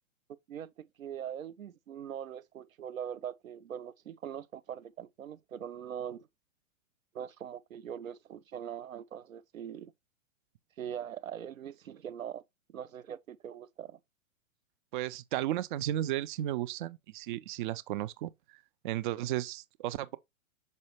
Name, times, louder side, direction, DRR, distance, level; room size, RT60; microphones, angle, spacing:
voice 1, 0.5-6.3 7.1-9.9 10.8-12.4 12.7-14.0, right 9 dB, 85° right, 0.7 m, -42 dB
voice 2, 14.9-20.2, right 13 dB, 40° right, 0.5 m, -34 dB
6.3 x 5.4 x 2.9 m
hypercardioid pair, 120°, 39 cm